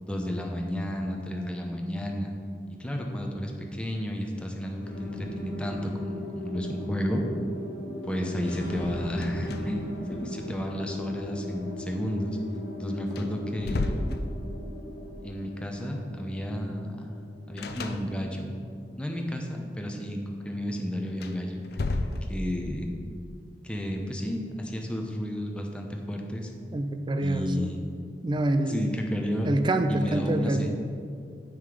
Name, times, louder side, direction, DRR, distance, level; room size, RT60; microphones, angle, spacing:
voice 1, 0.0-2.3 2.8-7.2 8.1-12.4 12.8-13.9 15.2-17.1 17.5-18.5 19.0-21.6 22.3-22.9 23.6-26.5 27.2-27.8 28.7-29.5 29.9-30.7, equal, 5° left, 1 dB, 0.7 m, -32 dB
sound 1, 4.8-19.4, equal, 85° left, 1.4 m, -38 dB
sound 2, 9.1-9.9 10.2-10.3 12.6-12.7 13.1-14.8 17.6-18.5 21.1-22.7, left 2 dB, 60° left, 0.5 m, -33 dB
voice 2, 26.7-27.8 28.2-28.9 29.4-30.7, right 1 dB, 25° right, 7 dB, 0.4 m, -26 dB
7.8 x 5.4 x 4.8 m, 2.3 s
head